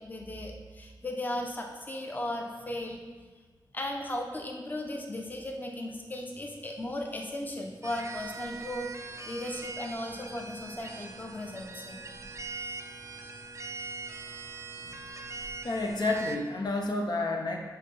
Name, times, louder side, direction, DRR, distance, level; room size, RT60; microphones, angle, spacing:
voice 1, 0.0-3.0 3.7-8.9 9.3-12.0 14.8-14.9, left 1 dB, 20° left, 2 dB, 0.7 m, -36 dB
sound 1, 7.8-16.4, right 3 dB, 35° right, 0.5 m, -42 dB
voice 2, 15.6-17.6, left 2 dB, 60° left, 1 dB, 0.7 m, -30 dB
7.9 x 2.8 x 5.5 m, 1.4 s
wide cardioid pair, 85°, 8 cm